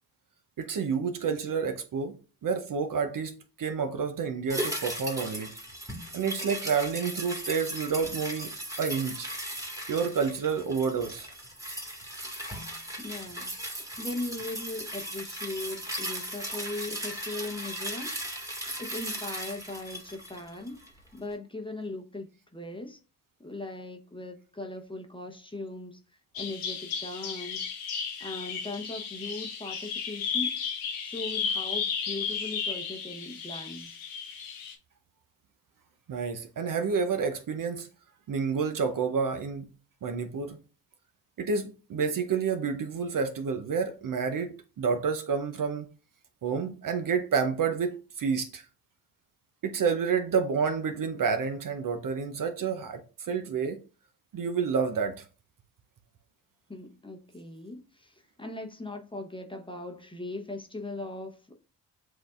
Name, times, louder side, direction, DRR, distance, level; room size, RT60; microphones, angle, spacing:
voice 1, 0.6-2.1 2.4-3.3 3.6-5.5 6.1-8.5 8.8-9.3 9.9-11.3 36.1-37.9 38.3-39.7 40.0-40.6 41.4-45.9 46.4-48.6 49.6-53.8 54.3-55.2, right 5 dB, 45° right, 0.8 m, -29 dB
sound 1, 4.5-21.0 21.3-21.4, right 1 dB, 5° right, 1.7 m, -37 dB
voice 2, 13.0-18.1 18.8-20.8 21.1-23.0 23.4-26.0 26.3-27.7 28.2-30.6 31.0-33.9 56.7-61.5, left 2 dB, 10° left, 0.9 m, -39 dB
Bird vocalization bird call bird song, 26.4-34.7, left 6 dB, 85° left, 0.9 m, -34 dB
7.7 x 2.6 x 2.4 m
supercardioid pair, 55°, 45 cm